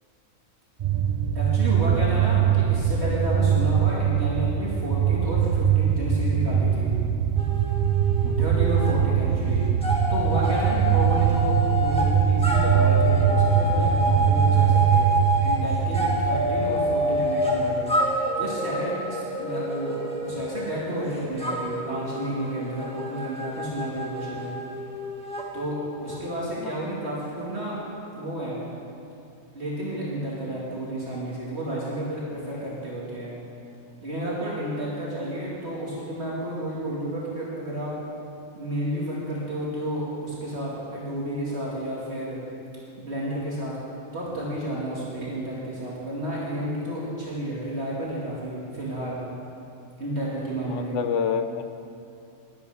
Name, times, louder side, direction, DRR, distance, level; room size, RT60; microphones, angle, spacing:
sound 1, 0.8-17.6, right 8 dB, 80° right, 0.4 m, -22 dB
voice 1, 1.3-7.0 8.4-9.7 10.1-15.1 15.4-17.9 18.4-24.5 25.5-27.8 28.1-28.7 29.5-33.4 34.0-38.0 38.5-42.4 43.0-43.7 44.1-49.2 50.0-51.0, right 1 dB, 55° right, -6 dB, 2.6 m, -31 dB
sound 2, 7.4-9.0 9.3-26.4, equal, 5° left, 1.5 m, -28 dB
voice 2, 50.7-51.6, left 7 dB, 70° left, 9 dB, 0.9 m, -28 dB
12.0 x 11.5 x 4.9 m, 2.6 s
omnidirectional pair, 1.3 m